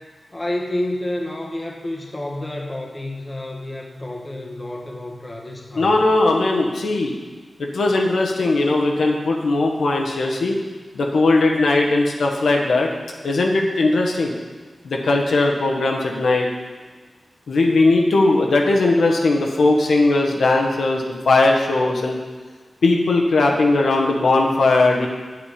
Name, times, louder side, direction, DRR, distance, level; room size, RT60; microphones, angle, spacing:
voice 1, 0.3-6.0, left 1 dB, 20° left, -1 dB, 1.3 m, -29 dB
voice 2, 5.8-7.2 7.6-10.6 10.9-12.9 13.2-14.3 14.8-16.5 17.5-22.2 22.8-25.1, left 2 dB, 85° left, 0 dB, 1.4 m, -18 dB
8.8 x 8.4 x 5.1 m, 1.4 s
wide cardioid pair, 145°, 0 cm